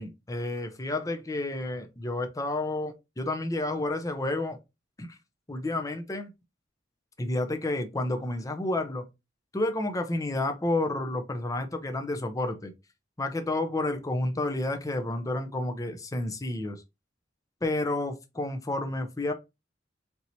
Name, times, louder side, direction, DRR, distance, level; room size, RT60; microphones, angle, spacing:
voice 1, 0.0-4.6 5.0-5.2 5.5-6.3 7.2-9.1 9.5-12.7 13.2-16.8 17.6-19.3, left 2 dB, 20° left, 0.6 m, -30 dB
4.6 x 2.9 x 2.6 m
head